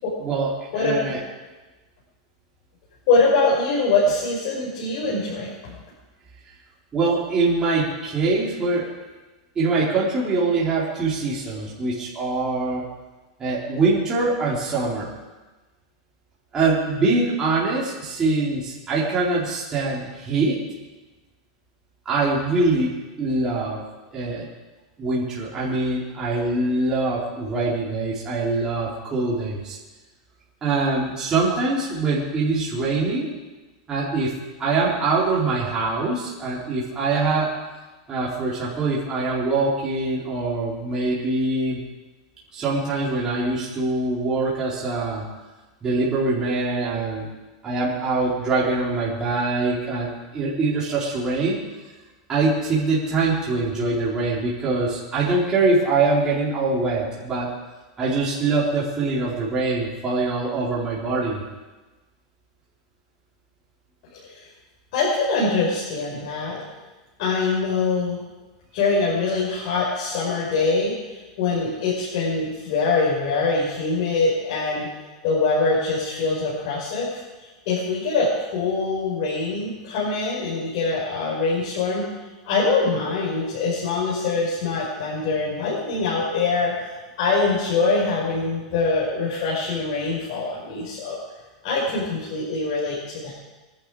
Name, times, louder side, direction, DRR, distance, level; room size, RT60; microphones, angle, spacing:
voice 1, 0.2-1.2 6.9-8.9 9.6-12.8 13.4-15.1 16.5-20.6 22.1-22.9 23.2-23.8 24.1-24.5 25.0-29.8 30.6-33.3 33.9-34.3 34.6-37.6 38.1-41.8 42.5-45.2 45.8-47.3 47.6-51.6 52.3-57.5 58.0-61.4, right 3 dB, 20° right, -7 dB, 4.0 m, -23 dB
voice 2, 3.1-5.5 64.1-64.5 64.9-66.6 67.2-68.2 68.7-74.9 75.2-82.0 82.4-86.9 87.2-91.2 91.6-93.3, left 3 dB, 55° left, -6 dB, 5.6 m, -23 dB
22.5 x 11.0 x 5.0 m, 1.2 s
supercardioid pair, 150°, 3 cm